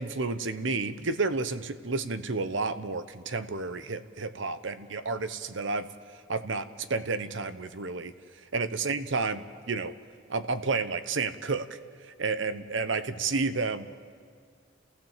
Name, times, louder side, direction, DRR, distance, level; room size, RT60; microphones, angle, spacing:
voice 1, 0.0-5.9 6.3-8.1 8.5-9.9 10.3-11.8 12.0-13.9, right 4 dB, 65° right, 11 dB, 0.9 m, -31 dB
29.0 x 15.5 x 7.4 m, 2.1 s
head